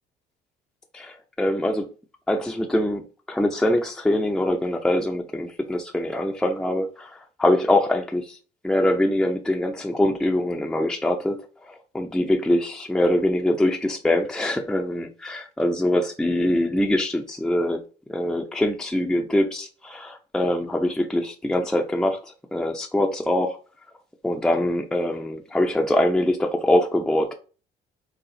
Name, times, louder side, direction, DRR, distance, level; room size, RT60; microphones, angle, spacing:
voice 1, 0.9-1.9 2.3-8.4 8.6-17.8 18.1-22.2 22.5-23.6 24.2-27.3, left 1 dB, 5° left, 0.5 m, -23 dB
4.2 x 2.4 x 3.8 m
cardioid pair, 110°, 17 cm